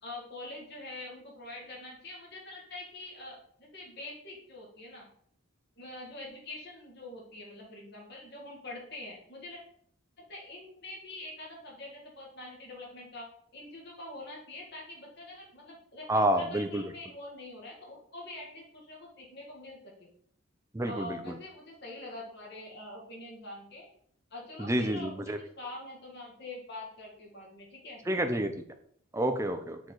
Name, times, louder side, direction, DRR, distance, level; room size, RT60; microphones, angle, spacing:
voice 1, 0.0-5.1 5.8-9.6 10.2-16.1 16.4-20.1 20.8-23.9 24.3-28.0, left 2 dB, 50° left, -2 dB, 2.0 m, -45 dB
voice 2, 16.1-16.8 20.7-21.2 24.6-25.4 28.1-28.5 29.1-29.8, right 1 dB, 15° right, 6 dB, 0.5 m, -28 dB
6.6 x 4.0 x 4.6 m, 0.63 s
head